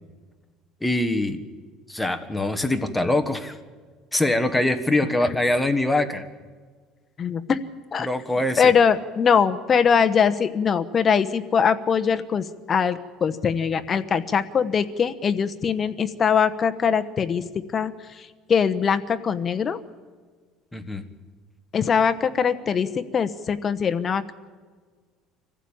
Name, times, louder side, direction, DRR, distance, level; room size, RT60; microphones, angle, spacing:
voice 1, 0.8-1.4 1.9-3.5 4.1-6.2 8.0-8.7 20.7-21.1, left 2 dB, 5° left, 7 dB, 1.4 m, -23 dB
voice 2, 7.2-7.6 7.9-8.1 8.6-17.9 18.2-19.8 21.7-24.3, left 6 dB, 30° left, 9 dB, 1.0 m, -22 dB
25.5 x 15.0 x 8.8 m, 1.5 s
cardioid pair, 145°, 0 cm